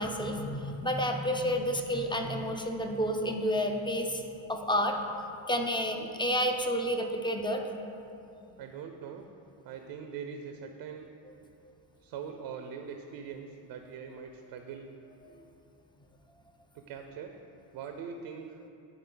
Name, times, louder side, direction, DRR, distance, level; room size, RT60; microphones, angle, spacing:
voice 1, 0.0-4.2 4.5-5.0 5.5-7.6, equal, 10° left, 3 dB, 0.4 m, -30 dB
voice 2, 8.6-9.3 9.6-11.1 12.0-14.9 16.7-17.3 17.7-18.6, right 6 dB, 65° right, 5 dB, 0.6 m, -42 dB
10.5 x 3.8 x 3.8 m, 2.7 s
cardioid pair, 100°, 46 cm